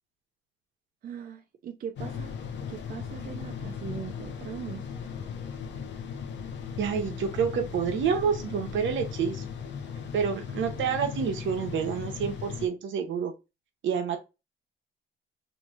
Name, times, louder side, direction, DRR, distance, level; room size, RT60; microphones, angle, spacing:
voice 1, 1.0-2.3 2.7-4.9, right 8 dB, 45° right, 0.5 m, -40 dB
sound 1, 2.0-12.7, left 6 dB, 65° left, 0.7 m, -37 dB
voice 2, 6.8-9.4 10.1-13.3 13.8-14.2, right 7 dB, 75° right, 0.8 m, -28 dB
3.1 x 2.6 x 2.4 m
cardioid pair, 90°, 20 cm